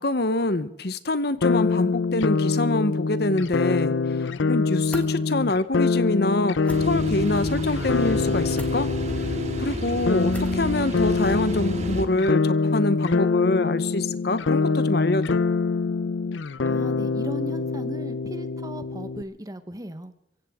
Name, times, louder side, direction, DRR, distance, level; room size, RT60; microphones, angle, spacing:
voice 1, 0.0-4.2 4.5-8.9 9.6-15.4, left 2 dB, 60° left, 14 dB, 1.0 m, -25 dB
sound 1, 1.4-19.2, left 4 dB, 85° left, 0.6 m, -25 dB
sound 2, 4.9-5.1 6.6-6.8 8.5-8.8 10.3-10.6, left 1 dB, 10° left, 1.7 m, -40 dB
sound 3, 6.7-12.0, right 1 dB, 40° right, 1.9 m, -31 dB
voice 2, 16.6-20.1, equal, 20° right, 11 dB, 1.0 m, -37 dB
25.5 x 15.5 x 3.7 m, 0.90 s
head